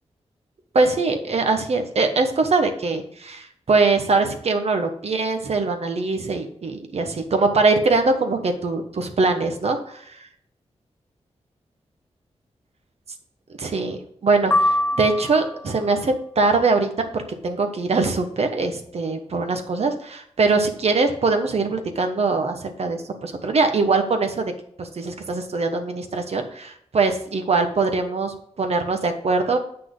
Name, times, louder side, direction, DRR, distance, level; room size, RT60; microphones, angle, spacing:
voice 1, 0.7-10.3 13.6-24.5 24.8-29.6, right 3 dB, 65° right, 6 dB, 1.2 m, -22 dB
sound 1, 14.5-15.8, left 1 dB, 20° left, 0.3 m, -23 dB
8.0 x 5.9 x 3.9 m, 0.68 s
wide cardioid pair, 75°, 12 cm